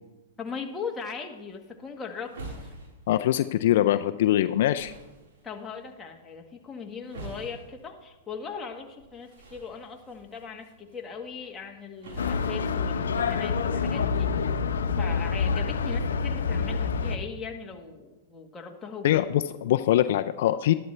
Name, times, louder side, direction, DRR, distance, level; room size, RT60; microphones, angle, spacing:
voice 1, 0.4-2.3 2.6-2.7 5.4-14.6 15.0-19.2, left 5 dB, 15° left, 1 dB, 1.5 m, -39 dB
sound 1, 1.5-13.5, right 2 dB, 70° right, 4.3 m, -48 dB
voice 2, 3.1-4.9 19.0-20.7, left 12 dB, 60° left, 10 dB, 0.4 m, -23 dB
sound 2, 12.2-17.2, left 5 dB, 85° left, 0.8 m, -27 dB
12.0 x 12.0 x 3.3 m, 1.1 s
hypercardioid pair, 130°, 0 cm